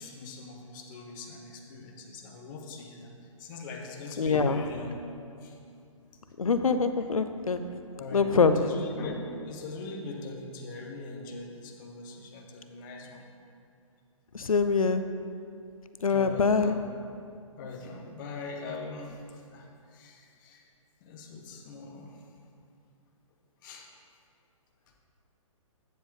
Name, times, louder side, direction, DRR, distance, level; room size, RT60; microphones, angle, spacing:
voice 1, 0.0-3.1 3.4-5.1 5.4-5.5 7.9-13.2 16.1-16.9 17.6-19.2 19.5-20.6 21.0-22.1 23.6-23.9, left 3 dB, 35° left, 1 dB, 1.1 m, -41 dB
voice 2, 4.2-4.6 6.4-7.6 8.1-8.8 14.3-15.0 16.0-16.7, left 4 dB, 85° left, 9 dB, 0.6 m, -24 dB
9.3 x 7.3 x 3.7 m, 2.4 s
figure-of-eight pair, 130°, 17 cm